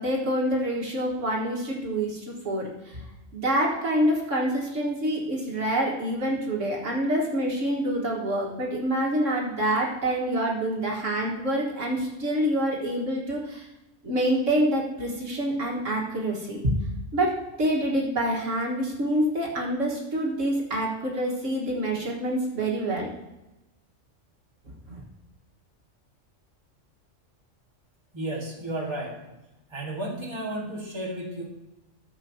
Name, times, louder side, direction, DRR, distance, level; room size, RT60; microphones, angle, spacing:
voice 1, 0.0-3.0 3.3-13.7 14.0-16.8 17.1-17.3 17.6-23.1 24.9-25.0, right 1 dB, 75° right, -2 dB, 2.0 m, -26 dB
voice 2, 28.1-29.2 29.7-31.4, right 1 dB, 20° right, -3 dB, 2.0 m, -33 dB
14.0 x 7.4 x 2.8 m, 0.98 s
omnidirectional pair, 1.3 m